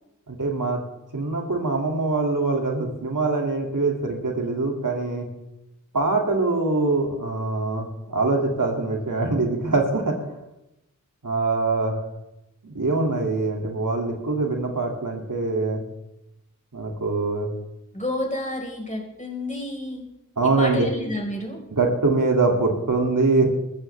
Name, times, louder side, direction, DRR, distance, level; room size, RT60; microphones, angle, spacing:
voice 1, 0.3-0.8 1.1-5.3 5.9-10.2 11.2-12.0 12.7-15.8 16.7-17.5 20.4-20.9 21.7-23.5, right 3 dB, 75° right, 1 dB, 2.5 m, -23 dB
voice 2, 17.9-20.0 20.6-21.6, left 1 dB, 25° left, -1 dB, 4.4 m, -30 dB
21.0 x 14.0 x 3.4 m, 0.91 s
wide cardioid pair, 45°, 31 cm